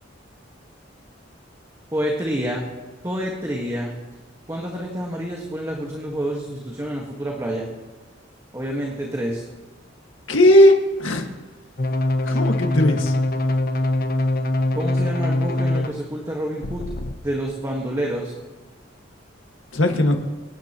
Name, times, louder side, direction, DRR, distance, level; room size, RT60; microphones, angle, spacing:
voice 1, 1.9-2.7 3.0-3.9 4.5-7.7 8.5-9.4 14.7-16.9 17.2-18.3, equal, 15° right, -1 dB, 1.6 m, -28 dB
voice 2, 10.3-10.7 11.0-11.3 12.3-13.1 19.7-20.1, left 1 dB, 90° left, 3 dB, 1.9 m, -16 dB
sound 1, 11.8-15.9 16.6-17.1, left 1 dB, 50° left, 1.0 m, -22 dB
26.0 x 10.0 x 3.0 m, 1.4 s
head